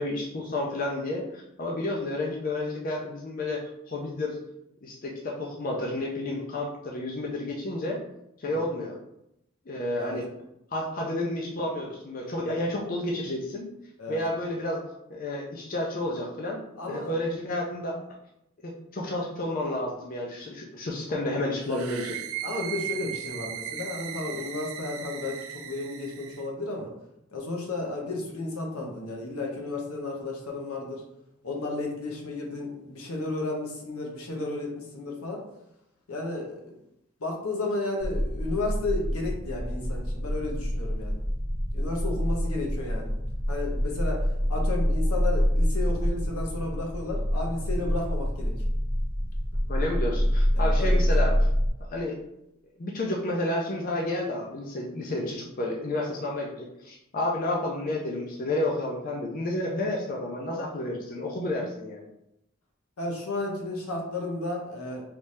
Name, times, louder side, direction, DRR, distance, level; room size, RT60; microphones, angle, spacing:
voice 1, 0.0-4.4 4.8-8.0 8.4-9.0 9.7-10.3 10.7-13.6 14.1-14.8 15.1-18.0 18.6-22.2 49.7-51.3 51.8-52.2 52.8-62.1, left 1 dB, 40° left, -1 dB, 0.5 m, -31 dB
voice 2, 16.8-17.1 22.4-26.9 27.3-31.0 31.4-35.4 36.1-36.8 37.2-41.2 41.7-43.1 43.5-48.5 50.5-51.3 63.0-65.0, left 2 dB, 85° left, 0 dB, 0.9 m, -33 dB
sound 1, 21.6-26.5, right 10 dB, 75° right, 0.4 m, -37 dB
sound 2, 38.0-51.7, equal, 20° left, 0.9 m, -26 dB
3.3 x 2.7 x 3.2 m, 0.81 s
head